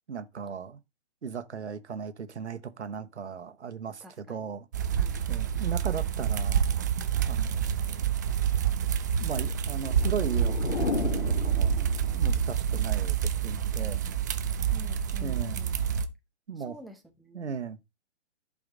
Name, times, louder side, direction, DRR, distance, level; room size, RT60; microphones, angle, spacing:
voice 1, 0.1-0.8 1.2-4.7 5.3-6.7 7.3-8.2 9.2-11.7 12.1-14.0 15.2-15.6 16.5-16.8 17.3-17.8, right 6 dB, 75° right, 1.3 m, -37 dB
voice 2, 4.0-4.5 4.9-5.2 14.7-15.7 16.6-17.5, equal, ahead, 0.8 m, -49 dB
sound 1, 4.7-16.1, right 8 dB, 15° right, 0.4 m, -28 dB
sound 2, 9.7-12.4, left 5 dB, 80° left, 1.5 m, -34 dB
11.0 x 5.0 x 3.8 m
figure-of-eight pair, 130°, 34 cm